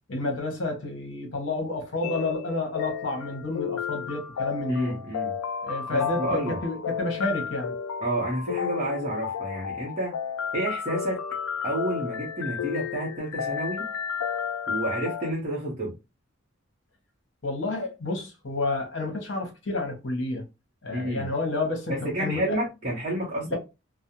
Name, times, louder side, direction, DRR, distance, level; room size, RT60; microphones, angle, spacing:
voice 1, 0.1-5.0 5.6-7.7 17.4-20.5 20.8-22.6 23.5-23.6, left 2 dB, 60° left, 0.9 m, -30 dB
sound 1, 2.0-15.3, left 7 dB, 85° left, 0.3 m, -32 dB
voice 2, 4.7-5.3 5.9-6.6 8.0-10.2 10.5-11.2 11.6-13.9 14.7-15.9 20.9-21.3 21.9-23.6, right 1 dB, 35° right, 0.7 m, -30 dB
2.4 x 2.0 x 2.8 m
head